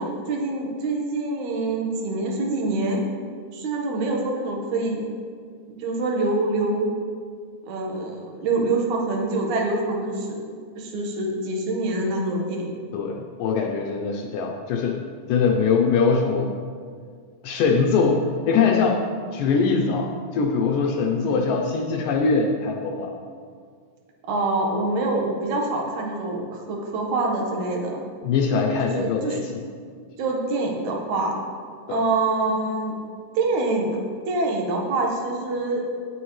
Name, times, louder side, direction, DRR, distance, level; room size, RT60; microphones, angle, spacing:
voice 1, 0.0-3.0 3.5-5.1 5.8-6.9 7.6-10.5 10.8-12.7 21.2-21.4 24.3-28.0 28.8-29.5 30.2-31.4 31.9-33.0 33.3-34.0 34.3-35.8, right 2 dB, 60° right, 0 dB, 2.5 m, -25 dB
voice 2, 12.9-15.0 15.3-16.5 17.4-19.0 19.3-23.1 28.2-29.6 31.9-32.0, left 5 dB, 75° left, 2 dB, 2.1 m, -22 dB
17.5 x 7.2 x 3.2 m, 2.1 s
omnidirectional pair, 4.2 m